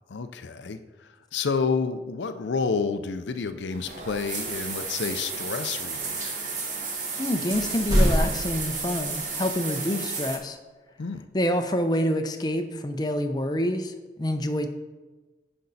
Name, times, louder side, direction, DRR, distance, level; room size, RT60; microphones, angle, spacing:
voice 1, 0.1-0.8 1.3-6.4 11.0-11.3, left 5 dB, 90° left, 9 dB, 0.5 m, -29 dB
sound 1, 3.7-10.4, right 4 dB, 45° right, 1.2 m, -33 dB
sound 2, 6.0-6.7 7.0-7.1 7.4-9.3, equal, 20° right, 1.7 m, -27 dB
voice 2, 7.2-10.6 11.3-13.9 14.2-14.7, equal, 25° left, 6 dB, 0.5 m, -27 dB
9.9 x 5.3 x 4.0 m, 1.2 s
head